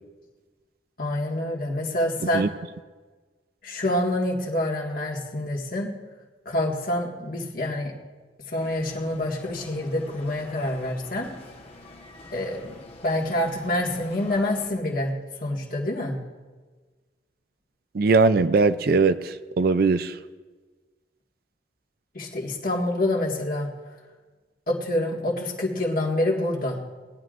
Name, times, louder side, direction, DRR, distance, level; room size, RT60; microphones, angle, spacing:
voice 1, 1.0-2.5 3.6-5.9 6.5-7.9 8.5-11.3 12.3-15.1 15.4-16.2 22.1-23.7 24.7-26.8, left 1 dB, 50° left, 1.8 m, -27 dB
sound 1, 8.6-14.7, left 2 dB, 30° left, 1.2 m, -46 dB
voice 2, 17.9-20.1, right 4 dB, 55° right, 0.4 m, -20 dB
20.0 x 11.0 x 2.5 m
head